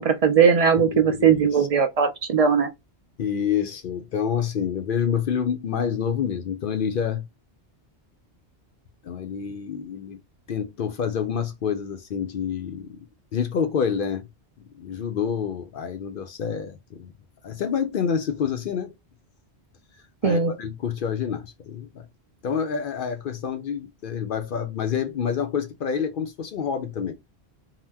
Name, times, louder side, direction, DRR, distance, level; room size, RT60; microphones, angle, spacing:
voice 1, 0.0-2.7 20.2-20.5, right 6 dB, 55° right, 0.4 m, -19 dB
voice 2, 0.9-1.7 3.2-7.2 9.0-10.2 10.5-13.1 13.3-14.3 14.7-17.1 17.4-18.9 20.2-22.1 22.4-27.2, left 7 dB, 60° left, 0.6 m, -28 dB
2.8 x 2.1 x 3.4 m
omnidirectional pair, 1.1 m